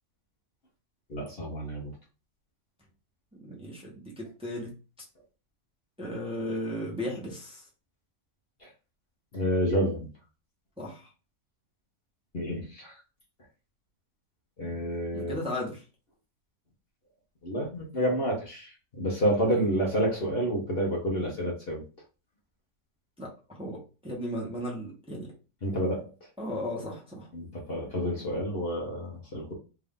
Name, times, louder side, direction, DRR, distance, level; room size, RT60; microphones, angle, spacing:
voice 1, 1.1-1.9 8.6-8.7 9.3-10.1 12.3-13.0 14.6-15.3 17.4-21.8 25.6-26.1 27.3-29.5, equal, 45° left, -2 dB, 1.2 m, -29 dB
voice 2, 3.3-4.7 6.0-7.6 10.8-11.1 15.1-15.8 23.2-23.3 23.6-25.3 26.4-27.3, left 1 dB, 5° right, -4 dB, 1.0 m, -35 dB
3.4 x 2.7 x 3.7 m, 0.33 s
omnidirectional pair, 1.5 m